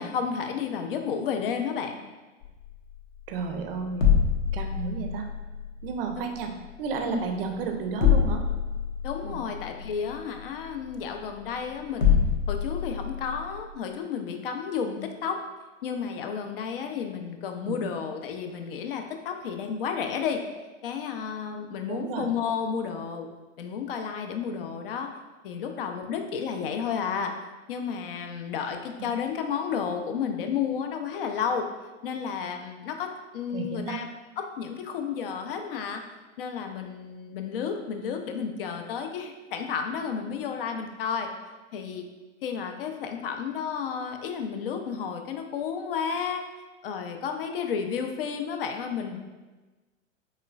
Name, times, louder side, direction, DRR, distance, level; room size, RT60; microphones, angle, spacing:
voice 1, 0.0-2.0 6.2-6.3 7.0-7.3 9.0-12.2 12.5-15.4 15.8-20.4 20.8-23.3 23.6-25.1 25.4-27.3 27.7-31.7 32.0-34.1 34.4-36.0 36.4-41.3 41.7-42.1 42.4-46.4 46.8-49.2, left 6 dB, 50° left, 5 dB, 0.4 m, -32 dB
sound 1, 2.4-13.6, left 7 dB, 80° left, 0.7 m, -27 dB
voice 2, 3.3-4.2 4.5-5.3 5.8-6.5 6.8-8.4 9.2-9.4 17.6-17.9 21.9-22.3 29.0-29.1 33.5-34.0, right 5 dB, 50° right, 5 dB, 0.5 m, -32 dB
3.6 x 3.1 x 2.3 m, 1.2 s
figure-of-eight pair, 100°, 39 cm